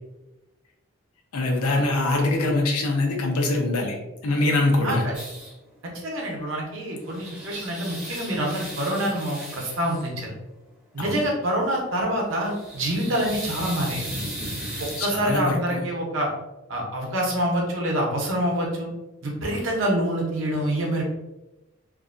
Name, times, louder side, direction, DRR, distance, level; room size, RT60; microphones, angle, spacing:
voice 1, 1.3-4.0 4.2-5.1 11.0-11.3 15.0-15.8, left 2 dB, 90° left, 2 dB, 0.6 m, -23 dB
sound 1, 5.1-5.5 6.8-10.1 12.3-15.2, equal, 5° right, 0.6 m, -36 dB
voice 2, 6.0-10.3 10.9-14.1 14.8-16.3 16.7-18.9 19.2-21.0, right 1 dB, 60° right, -1 dB, 0.7 m, -26 dB
2.5 x 2.1 x 2.5 m, 0.98 s
head